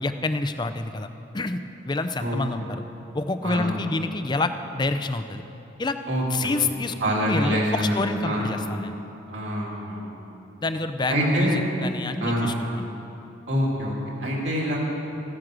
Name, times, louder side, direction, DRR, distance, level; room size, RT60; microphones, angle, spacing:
voice 1, 0.0-1.1 1.3-2.8 3.1-5.4 5.8-6.0 6.3-9.0 10.6-12.9, left 3 dB, 20° left, 9 dB, 0.5 m, -28 dB
voice 2, 2.2-2.7 3.4-3.7 6.1-6.5 7.0-8.5 9.3-10.1 11.1-11.6 12.2-12.6 13.5-14.8, equal, 65° right, -3 dB, 2.9 m, -26 dB
14.0 x 9.9 x 6.1 m, 3.0 s
head